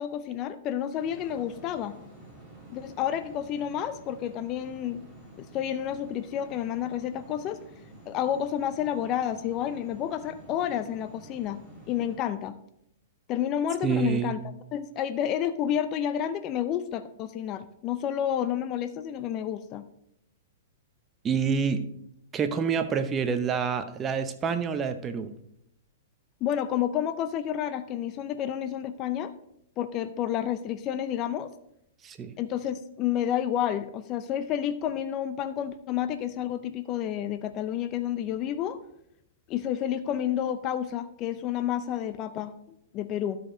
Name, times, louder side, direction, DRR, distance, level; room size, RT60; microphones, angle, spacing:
voice 1, 0.0-2.0 2.7-5.0 5.4-7.6 8.1-11.6 11.9-12.6 13.3-14.4 14.7-19.9 26.4-29.3 29.8-31.5 32.4-38.8 39.5-43.4, left 10 dB, 35° left, 11 dB, 0.5 m, -30 dB
sound 1, 1.0-12.2, right 1 dB, 5° right, 3.1 m, -49 dB
voice 2, 13.8-14.4 21.2-21.8 22.3-25.3 32.0-32.3, right 6 dB, 20° right, 9 dB, 0.7 m, -27 dB
12.5 x 5.1 x 3.8 m, 0.75 s
hypercardioid pair, 135°, 0 cm